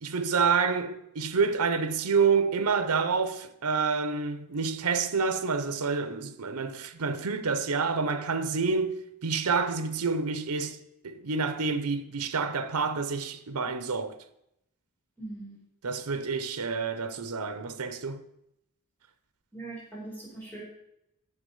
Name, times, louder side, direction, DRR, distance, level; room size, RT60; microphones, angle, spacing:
voice 1, 0.0-10.8 11.0-14.2 15.8-18.2, right 5 dB, 85° right, 0.8 m, -28 dB
voice 2, 15.2-15.6 19.5-20.6, right 2 dB, 10° left, 4.4 m, -41 dB
9.5 x 7.3 x 5.5 m
head